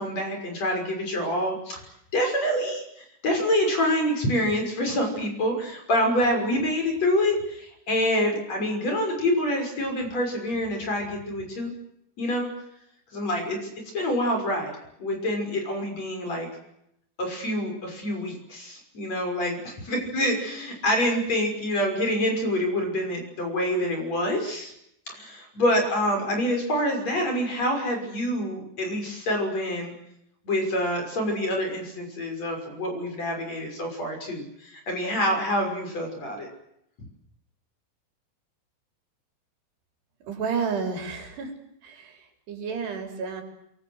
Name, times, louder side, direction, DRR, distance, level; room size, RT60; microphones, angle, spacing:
voice 1, 0.0-1.8 2.1-11.7 12.2-12.5 13.1-14.7 15.0-16.5 17.2-24.7 25.1-29.9 30.4-36.5, equal, 40° left, 3 dB, 7.2 m, -26 dB
voice 2, 40.3-41.5 41.8-42.1 42.5-43.4, right 5 dB, 80° right, 4 dB, 6.0 m, -30 dB
29.5 x 23.0 x 8.1 m, 0.79 s
omnidirectional pair, 4.7 m